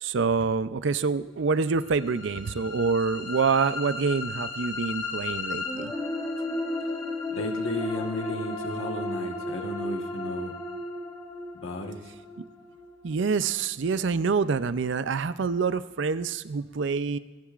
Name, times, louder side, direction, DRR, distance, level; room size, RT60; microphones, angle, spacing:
voice 1, 0.0-5.9 13.0-17.2, right 5 dB, 60° right, 14 dB, 0.5 m, -26 dB
sound 1, 1.8-13.9, left 2 dB, 20° left, 2.7 m, -34 dB
voice 2, 7.3-10.5 11.5-12.0, left 2 dB, 80° left, 4 dB, 1.4 m, -34 dB
26.5 x 10.5 x 2.5 m, 1.2 s
head